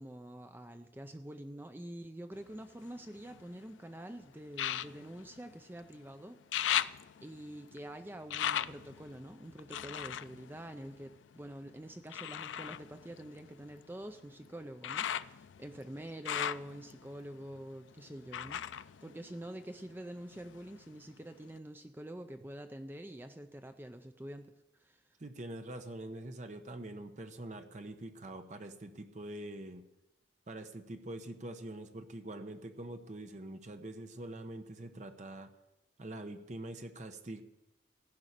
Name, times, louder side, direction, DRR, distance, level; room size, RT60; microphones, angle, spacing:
voice 1, 0.0-6.4 7.2-18.6 19.0-25.0, right 1 dB, 10° right, 7 dB, 0.5 m, -46 dB
sound 1, 2.3-3.7 4.5-6.0 6.3-11.5 12.1-19.9 20.3-21.1 21.6-21.7, left 10 dB, 85° left, 0.4 m, -39 dB
voice 2, 25.2-29.8 30.5-35.5 36.0-37.4, right 1 dB, 40° right, 7 dB, 0.9 m, -44 dB
15.0 x 6.2 x 8.2 m, 0.94 s
head